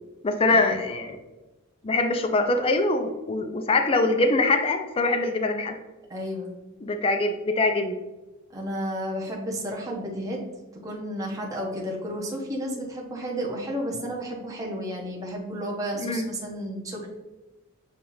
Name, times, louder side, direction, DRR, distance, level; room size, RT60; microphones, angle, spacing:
voice 1, 0.2-1.2 1.8-5.7 6.8-8.0 16.0-16.3, left 2 dB, 25° left, 7 dB, 0.3 m, -23 dB
voice 2, 6.1-6.5 8.5-10.4 10.7-17.1, equal, 15° right, -3 dB, 0.7 m, -32 dB
7.1 x 2.4 x 3.0 m, 1.1 s
head